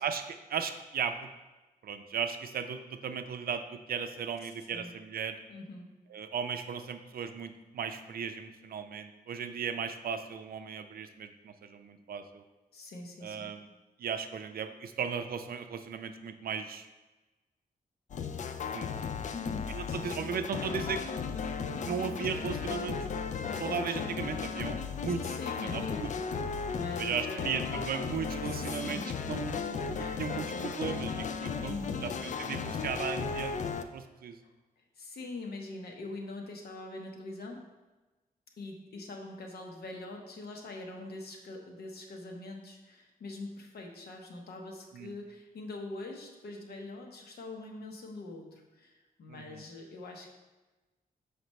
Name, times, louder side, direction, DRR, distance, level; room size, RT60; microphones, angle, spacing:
voice 1, 0.0-1.3 1.8-5.4 6.1-12.4 13.2-13.7 14.0-16.9 18.7-18.9 19.7-21.0 21.8-23.0 23.5-25.3 25.6-26.1 27.0-33.6 33.9-34.4 44.9-45.1 49.3-49.6, right 7 dB, 70° right, 8 dB, 0.5 m, -36 dB
voice 2, 4.4-4.9 5.5-5.9 12.7-13.5 19.3-20.3 25.0-26.4 26.7-27.6 28.4-29.1 30.0-30.2 31.7-32.3 34.4-37.6 38.6-50.3, left 2 dB, 80° left, 1 dB, 1.0 m, -43 dB
sound 1, 18.1-33.8, left 5 dB, 50° left, 0.4 m, -35 dB
6.5 x 4.9 x 3.1 m, 1.1 s
wide cardioid pair, 135°, 16 cm